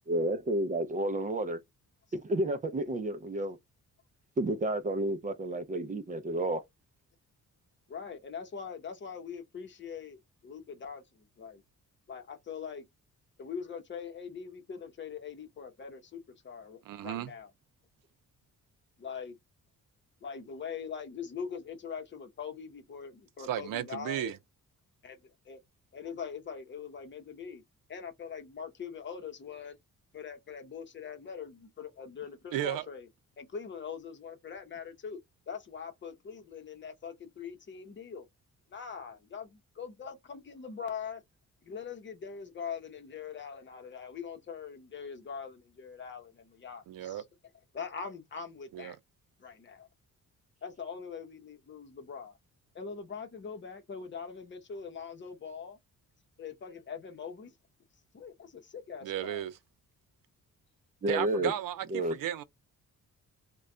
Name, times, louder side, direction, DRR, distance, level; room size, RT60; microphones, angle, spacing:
voice 1, 0.1-1.6 2.1-3.6 4.4-6.6 61.0-61.5 61.9-62.2, right 1 dB, 25° right, 0.4 m, -31 dB
voice 2, 7.9-11.6 12.1-12.9 13.4-17.5 19.0-19.3 20.2-24.3 25.0-25.6 25.9-27.6 27.9-29.8 30.1-33.1 33.4-35.2 35.5-38.3 38.7-41.2 41.6-47.2 47.7-49.0 49.4-49.9 50.6-52.4 52.7-55.8 56.4-57.5 58.1-59.5, left 6 dB, 35° left, 0.8 m, -42 dB
voice 3, 16.9-17.3 23.5-24.4 32.5-32.8 46.9-47.2 48.7-49.0 59.0-59.5 61.1-62.4, right 11 dB, 85° right, 0.6 m, -34 dB
3.1 x 2.3 x 3.7 m
wide cardioid pair, 165°, 32 cm